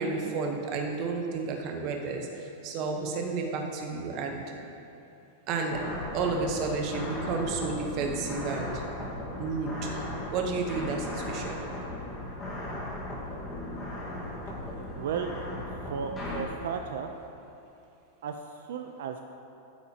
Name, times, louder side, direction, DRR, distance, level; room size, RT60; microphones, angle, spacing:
voice 1, 0.0-4.4 5.5-5.8 6.1-8.8 9.4-10.0 10.3-11.6, right 4 dB, 35° right, 2 dB, 1.0 m, -31 dB
sound 1, 5.7-16.4, left 1 dB, 10° left, 1.6 m, -37 dB
voice 2, 15.0-15.3 15.9-17.1 18.2-18.4 18.7-19.2, right 7 dB, 70° right, 5 dB, 0.5 m, -34 dB
13.5 x 8.6 x 2.9 m, 2.8 s
supercardioid pair, 170°, 0 cm